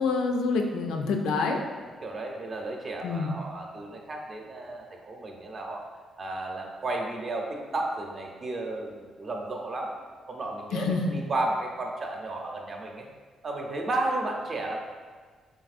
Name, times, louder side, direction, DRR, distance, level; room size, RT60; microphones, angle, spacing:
voice 1, 0.0-1.6 3.0-3.4 10.7-11.2, left 4 dB, 90° left, 3 dB, 0.4 m, -27 dB
voice 2, 1.9-5.8 6.2-9.9 10.3-13.1 13.4-14.8, right 2 dB, 40° right, 1 dB, 0.6 m, -33 dB
4.1 x 3.7 x 2.5 m, 1.5 s
cardioid pair, 100°, 0 cm